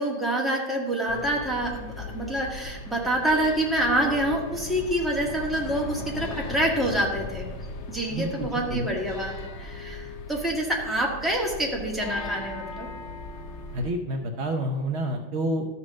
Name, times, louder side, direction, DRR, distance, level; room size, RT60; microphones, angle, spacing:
voice 1, 0.0-7.5 7.9-12.9, right 1 dB, ahead, -3 dB, 1.4 m, -27 dB
sound 1, 1.1-13.9, left 3 dB, 75° left, 0.6 m, -38 dB
voice 2, 8.1-8.9 13.7-15.7, right 1 dB, 90° right, 2 dB, 0.5 m, -29 dB
13.0 x 4.4 x 6.2 m, 1.1 s
omnidirectional pair, 2.2 m